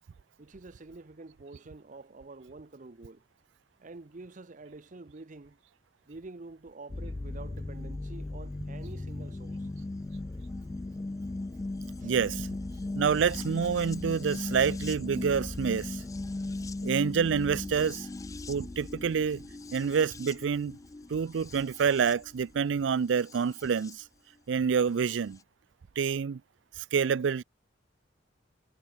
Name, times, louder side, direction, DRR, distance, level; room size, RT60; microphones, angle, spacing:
voice 1, 0.4-3.2 3.8-5.6 6.1-9.7 12.0-12.2, right 3 dB, 45° right, 0.8 m, -47 dB
sound 1, 6.9-23.9 25.1-25.2, left 2 dB, 20° left, 0.3 m, -38 dB
voice 2, 12.0-12.5 12.9-16.0 16.8-18.1 18.5-19.4 19.7-20.8 21.1-24.0 24.5-25.4 26.0-26.4 26.8-27.4, right 6 dB, 90° right, 0.4 m, -27 dB
head